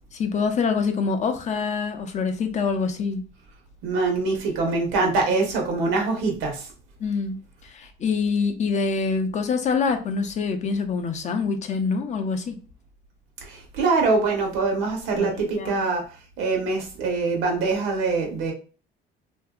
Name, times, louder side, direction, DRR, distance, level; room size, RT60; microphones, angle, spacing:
voice 1, 0.1-3.2 7.0-7.4 7.6-12.6 15.2-15.8, left 5 dB, 40° left, 7 dB, 0.5 m, -25 dB
voice 2, 3.8-6.7 13.4-16.0 16.4-18.5, right 3 dB, 90° right, 1 dB, 1.1 m, -24 dB
2.8 x 2.6 x 2.3 m, 0.36 s
cardioid pair, 130°, 19 cm